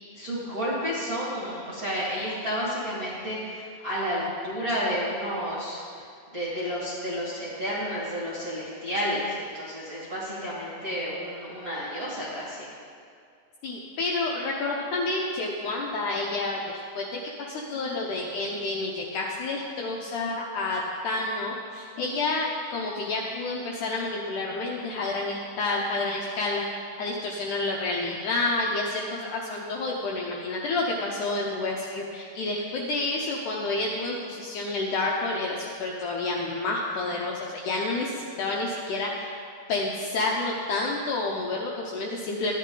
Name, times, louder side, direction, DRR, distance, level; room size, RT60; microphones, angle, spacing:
voice 1, 0.1-6.1 6.3-12.7, equal, 35° right, -8 dB, 1.5 m, -31 dB
voice 2, 13.6-17.1 17.4-39.4 39.7-42.5, left 2 dB, 75° left, -2 dB, 1.9 m, -29 dB
12.5 x 9.8 x 3.8 m, 2.2 s
omnidirectional pair, 4.3 m